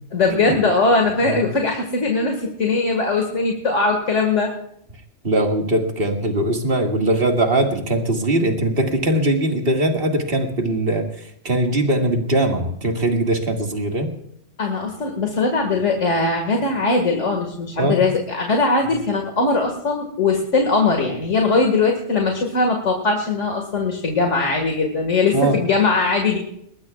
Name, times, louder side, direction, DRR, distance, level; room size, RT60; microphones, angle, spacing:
voice 1, 0.1-4.5 14.6-26.4, left 3 dB, 85° left, 2 dB, 2.3 m, -20 dB
voice 2, 5.2-14.1 17.8-18.0 25.3-25.6, right 1 dB, 50° right, 3 dB, 2.2 m, -21 dB
20.5 x 20.0 x 2.4 m, 0.72 s
omnidirectional pair, 1.2 m